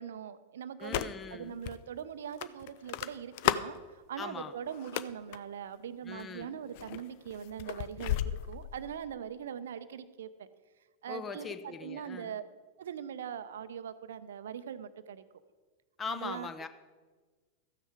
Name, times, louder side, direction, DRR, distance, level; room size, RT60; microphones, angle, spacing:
voice 1, 0.0-10.5 11.0-12.4 12.8-15.2 16.1-16.5, right 8 dB, 60° right, 13 dB, 0.6 m, -41 dB
sound 1, 0.8-1.3 1.6-1.8 2.4-3.8 4.7-5.4 6.1-6.4 6.7-9.0, left 14 dB, 45° left, 0.4 m, -33 dB
voice 2, 0.8-1.6 4.2-4.5 6.0-6.6 11.1-12.4 16.0-16.7, left 5 dB, 20° left, 11 dB, 0.8 m, -41 dB
13.5 x 9.1 x 4.8 m, 1.4 s
figure-of-eight pair, 90°, 0 cm